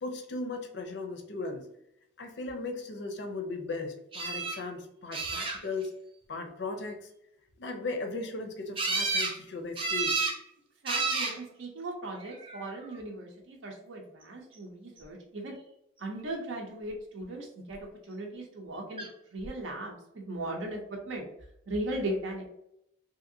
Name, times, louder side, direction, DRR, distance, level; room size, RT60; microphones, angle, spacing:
voice 1, 0.0-1.7 2.2-5.9 6.3-7.0 7.6-10.3, left 3 dB, 65° left, 5 dB, 0.5 m, -37 dB
sound 1, 4.1-4.6 5.1-5.9 8.8-9.4 9.8-10.4 10.9-11.4 12.3-12.8 19.0-19.1 19.4-19.5, right 3 dB, 25° right, 0.4 m, -31 dB
voice 2, 10.8-15.5 16.0-19.1 19.3-21.3 21.7-22.5, right 1 dB, 80° right, 1 dB, 0.6 m, -38 dB
2.8 x 2.6 x 2.6 m, 0.78 s
head